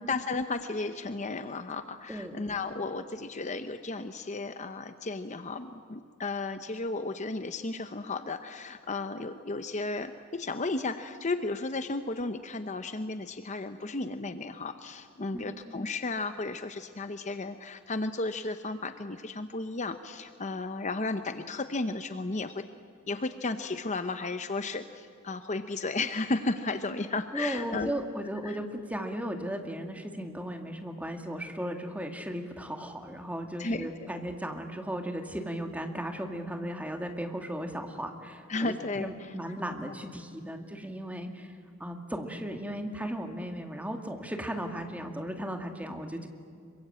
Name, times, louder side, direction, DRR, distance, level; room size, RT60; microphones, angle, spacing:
voice 1, 0.0-22.6 23.1-27.9 28.4-28.6 33.6-33.9 38.5-39.1, left 3 dB, 35° left, 9 dB, 0.8 m, -34 dB
voice 2, 2.1-2.4 15.3-15.5 27.3-41.5 41.8-46.3, equal, 5° right, 4 dB, 2.1 m, -36 dB
26.0 x 23.5 x 8.8 m, 2.3 s
head